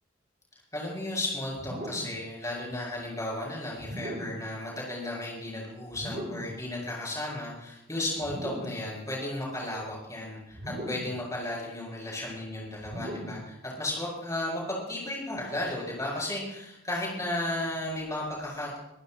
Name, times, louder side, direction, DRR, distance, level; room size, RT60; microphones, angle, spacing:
voice 1, 0.7-18.8, left 1 dB, 15° left, -3 dB, 6.0 m, -34 dB
sound 1, 1.6-2.3 3.8-4.5 5.9-6.6 8.2-8.9 10.5-11.3 12.8-13.5, equal, 45° right, 3.7 m, -38 dB
23.5 x 15.0 x 2.2 m, 0.87 s
head